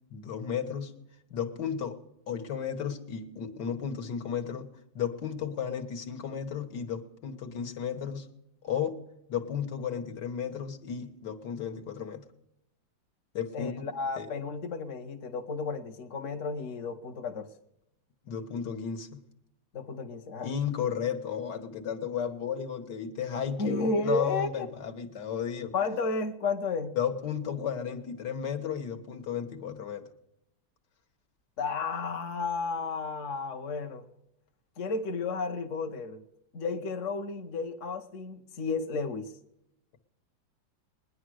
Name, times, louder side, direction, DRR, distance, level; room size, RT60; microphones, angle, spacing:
voice 1, 0.1-0.9 1.3-2.0 2.3-4.7 5.0-8.3 8.6-9.0 9.3-12.3 13.3-13.9 14.2-14.3 18.3-19.2 20.4-25.7 27.0-30.0, left 8 dB, 65° left, 6 dB, 1.9 m, -34 dB
voice 2, 13.5-17.5 19.7-20.5 23.6-24.7 25.7-26.9 31.6-34.0 34.8-36.2 36.5-39.3, left 4 dB, 45° left, 5 dB, 1.2 m, -32 dB
20.5 x 10.5 x 6.3 m, 0.82 s
omnidirectional pair, 2.0 m